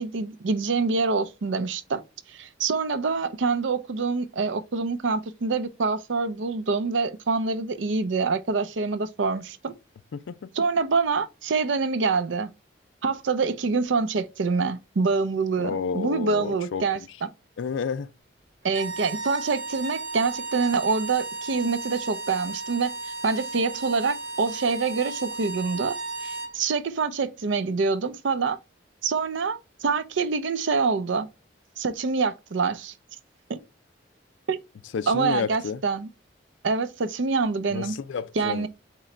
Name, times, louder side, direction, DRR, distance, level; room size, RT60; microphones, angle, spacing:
voice 1, 0.0-2.0 2.3-9.7 10.5-12.5 13.0-17.3 18.6-22.9 23.2-26.0 26.2-28.6 29.0-31.3 31.8-32.9 33.5-33.6 34.5-34.6 35.1-36.1 36.6-38.0 38.4-38.7, right 4 dB, 85° right, 0.5 m, -26 dB
voice 2, 10.1-10.5 15.6-16.8 17.6-18.1 34.9-35.8 37.7-38.7, left 6 dB, 85° left, 0.4 m, -30 dB
sound 1, 18.7-26.6, right 3 dB, 65° right, 1.0 m, -35 dB
3.8 x 3.1 x 4.3 m
head